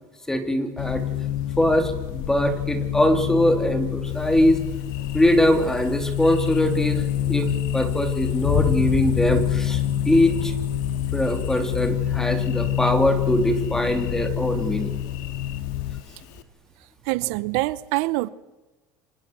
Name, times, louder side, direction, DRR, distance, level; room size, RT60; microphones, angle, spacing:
voice 1, 0.3-1.0 1.6-4.6 5.1-9.8 10.1-10.5 11.1-14.9, left 1 dB, 5° left, 2.9 m, -22 dB
sound 1, 0.8-16.0, left 11 dB, 65° left, 1.0 m, -27 dB
Thunder, 4.1-16.4, left 9 dB, 90° left, 2.4 m, -34 dB
voice 2, 17.1-18.3, right 20 dB, 80° right, 1.0 m, -25 dB
28.5 x 25.5 x 7.7 m
cardioid pair, 165°, 9 cm